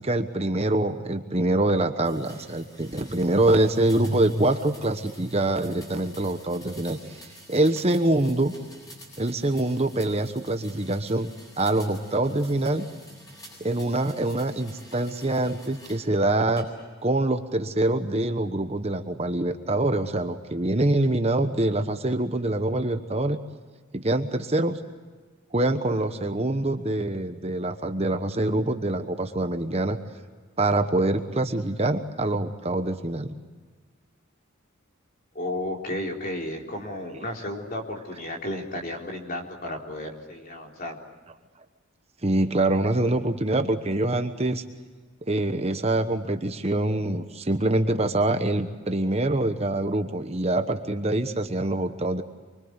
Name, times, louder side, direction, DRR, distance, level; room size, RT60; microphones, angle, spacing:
voice 1, 0.0-7.2 7.5-8.5 9.2-11.3 11.6-12.8 13.6-16.7 17.0-23.4 23.9-24.8 25.5-30.0 30.6-33.3 42.2-44.6 45.3-52.2, right 2 dB, 30° right, 8 dB, 1.1 m, -25 dB
sound 1, 2.0-16.1 16.6-17.1, equal, 15° left, 7.8 m, -49 dB
voice 2, 35.3-41.0, left 1 dB, 40° left, 1 dB, 3.8 m, -33 dB
25.0 x 24.5 x 8.1 m, 1.5 s
head